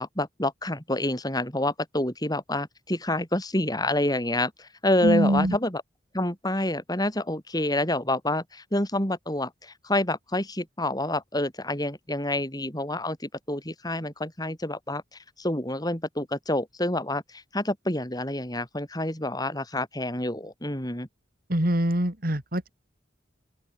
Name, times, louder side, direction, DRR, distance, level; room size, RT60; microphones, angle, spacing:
voice 1, 0.0-5.8 6.1-15.0 15.4-21.1, left 1 dB, 20° left, 6.2 m, -28 dB
voice 2, 5.0-5.6 21.5-22.7, equal, 50° right, 3.6 m, -24 dB
open air
head